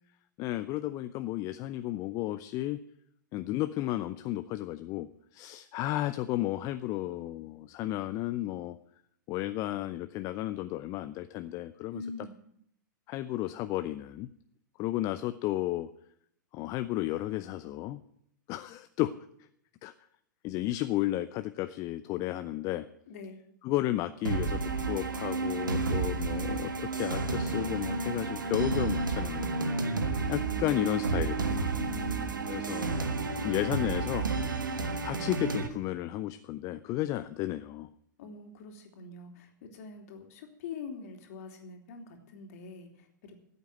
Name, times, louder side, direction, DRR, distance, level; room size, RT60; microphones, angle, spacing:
voice 1, 0.4-2.8 3.3-8.8 9.3-12.0 13.1-14.3 14.8-15.9 16.5-18.0 18.5-19.1 19.8-19.9 20.4-22.9 23.6-29.5 30.3-31.8 32.5-33.0 33.4-34.3 35.0-37.9, left 15 dB, 35° left, 11 dB, 0.6 m, -33 dB
voice 2, 11.9-12.3 23.1-23.4 31.8-32.4 38.2-43.3, left 4 dB, 50° left, 4 dB, 3.0 m, -43 dB
sound 1, 24.2-35.7, right 3 dB, 75° right, 1.6 m, -31 dB
14.0 x 8.2 x 8.8 m, 0.71 s
figure-of-eight pair, 105°, 11 cm